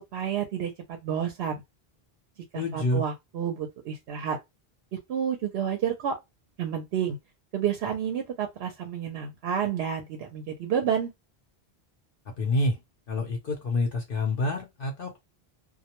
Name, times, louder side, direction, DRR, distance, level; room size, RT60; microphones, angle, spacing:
voice 1, 0.1-1.6 2.5-4.4 5.1-6.2 6.6-7.2 7.5-11.1, right 8 dB, 80° right, 0.8 m, -30 dB
voice 2, 2.5-3.0 12.4-12.8 13.1-15.2, left 2 dB, 65° left, 0.8 m, -27 dB
2.2 x 2.1 x 2.9 m
omnidirectional pair, 1.0 m